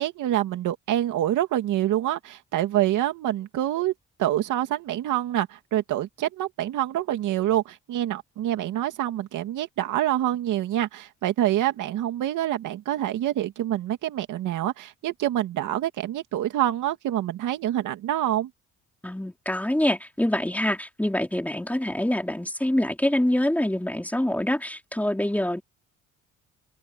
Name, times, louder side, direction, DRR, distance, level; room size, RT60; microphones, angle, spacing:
voice 1, 0.0-3.9 4.2-18.5, right 13 dB, 85° right, 2.4 m, -26 dB
voice 2, 19.0-25.6, left 1 dB, 5° left, 4.7 m, -25 dB
open air
cardioid pair, 90°, 30 cm